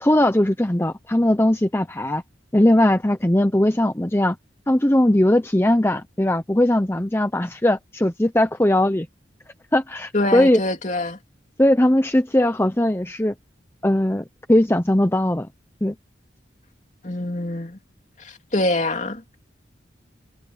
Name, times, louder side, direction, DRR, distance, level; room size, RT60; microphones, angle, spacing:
voice 1, 0.0-2.2 2.5-4.4 4.7-9.1 9.7-10.6 11.6-13.3 13.8-15.5 15.8-15.9, left 1 dB, 15° left, 0.7 m, -19 dB
voice 2, 10.1-11.2 17.0-17.8 18.2-19.2, left 2 dB, 40° left, 2.8 m, -24 dB
head